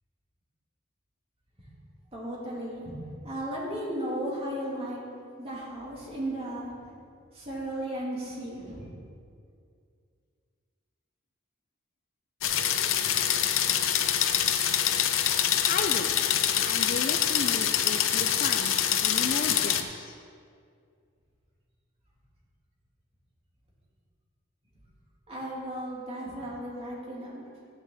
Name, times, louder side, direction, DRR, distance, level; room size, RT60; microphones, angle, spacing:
voice 1, 2.1-3.0 3.2-5.0 5.4-6.7 7.3-8.9 25.3-27.4, right 1 dB, 30° right, -5 dB, 2.9 m, -35 dB
sound 1, 12.4-19.8, left 9 dB, 85° left, 0.7 m, -25 dB
voice 2, 15.7-16.1 16.6-18.8 19.0-20.2, left 4 dB, 45° left, 6 dB, 0.4 m, -34 dB
12.0 x 9.7 x 4.0 m, 2.2 s
head